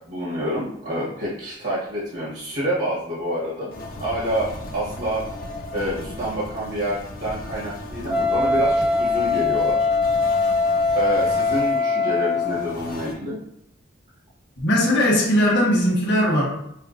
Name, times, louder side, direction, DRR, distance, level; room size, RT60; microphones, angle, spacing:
voice 1, 0.1-5.2 5.7-9.8 10.9-13.4, equal, 65° right, -8 dB, 1.4 m, -27 dB
sound 1, 3.7-13.1, left 1 dB, 50° left, 0.5 m, -36 dB
Wind instrument woodwind instrument, 8.1-12.8, left 3 dB, 5° right, 0.4 m, -21 dB
voice 2, 14.6-16.4, equal, 65° left, -3 dB, 1.4 m, -19 dB
5.6 x 2.2 x 2.5 m, 0.77 s
head